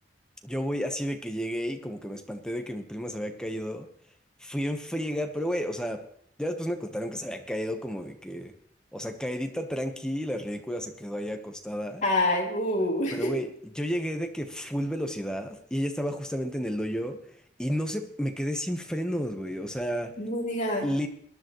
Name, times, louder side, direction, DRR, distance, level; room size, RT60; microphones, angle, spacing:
voice 1, 0.4-3.9 4.4-6.0 6.4-8.5 8.9-12.0 13.1-17.2 17.6-20.1 20.8-21.1, equal, 5° left, 4 dB, 1.1 m, -32 dB
voice 2, 12.0-13.3 20.2-20.9, left 1 dB, 40° left, -2 dB, 3.0 m, -26 dB
21.5 x 10.5 x 3.1 m, 0.64 s
head